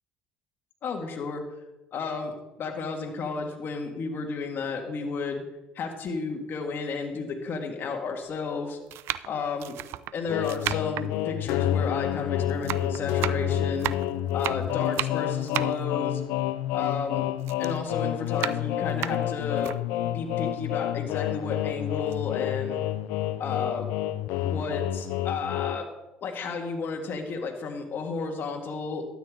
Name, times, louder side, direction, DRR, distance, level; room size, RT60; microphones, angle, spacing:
voice 1, 0.8-1.4 1.9-5.4 5.7-8.8 9.3-9.8 10.1-13.9 14.3-16.2 16.7-17.3 17.6-19.7 20.1-22.8 23.4-23.9 24.4-25.9 26.2-29.1, left 4 dB, 50° left, 3 dB, 2.1 m, -32 dB
sound 1, 6.1-6.2 7.0-7.1 8.1-8.4 8.9-12.2 12.5-17.1 17.4-19.8 20.3-20.4 20.7-21.6 22.0-22.2, right 14 dB, 65° right, 0.4 m, -34 dB
sound 2, 10.3-25.8, left 12 dB, 75° left, 0.4 m, -29 dB
12.5 x 9.2 x 3.8 m, 1.0 s
hypercardioid pair, 70°, 4 cm